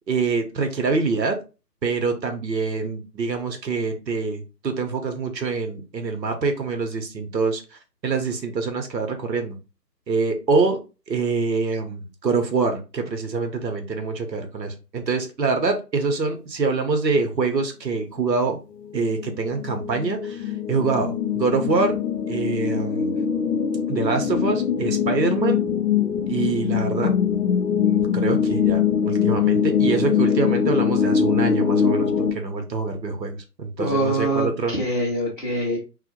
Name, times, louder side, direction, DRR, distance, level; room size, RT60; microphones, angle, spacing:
voice 1, 0.1-1.4 1.8-7.6 8.0-9.6 10.1-10.8 11.1-18.6 18.9-21.9 22.3-23.2 23.9-25.6 26.3-27.1 27.8-34.8, right 4 dB, 80° right, 5 dB, 0.7 m, -25 dB
sound 1, 18.8-32.3, left 7 dB, 75° left, 0.6 m, -22 dB
voice 2, 33.8-35.8, right 1 dB, 35° left, -7 dB, 0.6 m, -24 dB
2.1 x 2.1 x 2.8 m, 0.31 s
figure-of-eight pair, 150°, 50 cm